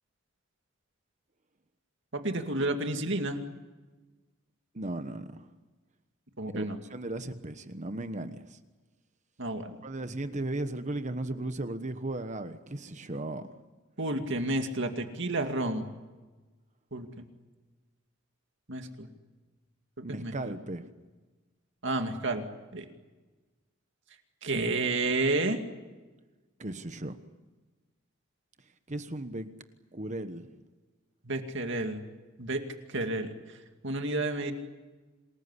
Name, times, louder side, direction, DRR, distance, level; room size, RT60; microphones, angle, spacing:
voice 1, 2.1-3.4 6.4-6.8 9.4-9.8 14.0-15.9 16.9-17.3 18.7-19.1 20.0-20.5 21.8-22.4 22.7-22.9 24.4-25.6 31.2-32.0 32.4-32.6 32.9-33.3 33.8-34.5, right 2 dB, 60° right, 5 dB, 2.4 m, -31 dB
voice 2, 4.7-5.5 6.5-6.6 6.9-8.6 9.8-13.6 20.0-20.9 26.6-27.2 28.9-29.5 29.9-30.6, right 2 dB, 35° right, 10 dB, 1.2 m, -36 dB
27.5 x 20.0 x 9.8 m, 1.3 s
head